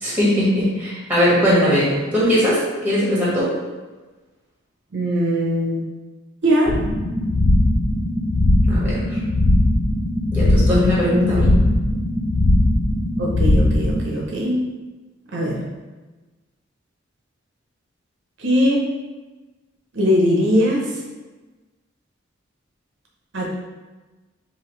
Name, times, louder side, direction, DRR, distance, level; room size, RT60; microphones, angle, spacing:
voice 1, 0.0-3.5 8.7-9.2 10.3-11.5, equal, 10° right, -7 dB, 1.3 m, -19 dB
voice 2, 4.9-5.9 6.4-6.8 13.2-14.6 15.3-15.6 18.4-18.8 19.9-21.0 23.3-23.5, equal, 65° right, -2 dB, 0.6 m, -20 dB
sound 1, 6.7-14.0, left 1 dB, 85° left, 0.5 m, -19 dB
4.9 x 2.6 x 3.1 m, 1.2 s
head